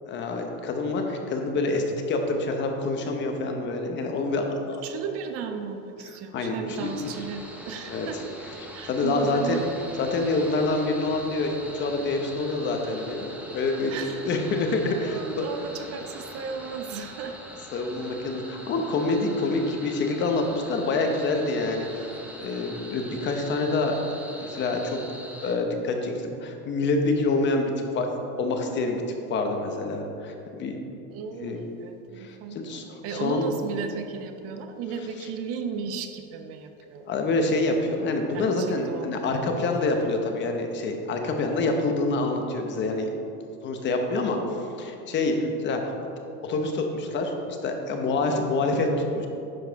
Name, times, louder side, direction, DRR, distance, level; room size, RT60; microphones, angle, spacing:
voice 1, 0.1-4.9 6.3-6.9 7.9-8.1 8.9-9.6 10.0-13.3 13.5-13.9 14.3-15.4 17.7-22.1 22.4-24.0 24.4-25.0 25.4-28.1 28.4-29.0 29.3-30.7 31.4-31.6 32.2-33.5 35.2-35.3 37.1-43.1 43.6-44.4 44.8-45.9 46.4-48.9 49.1-49.3, left 3 dB, 30° left, 4 dB, 0.9 m, -26 dB
voice 2, 4.8-8.2 8.7-9.7 13.9-14.6 14.9-17.4 18.2-18.3 31.1-37.1 38.3-39.2, right 6 dB, 40° right, 6 dB, 0.5 m, -35 dB
sound 1, 6.7-25.5, equal, 5° right, 0.7 m, -42 dB
11.0 x 4.7 x 4.6 m, 2.8 s
supercardioid pair, 145°, 36 cm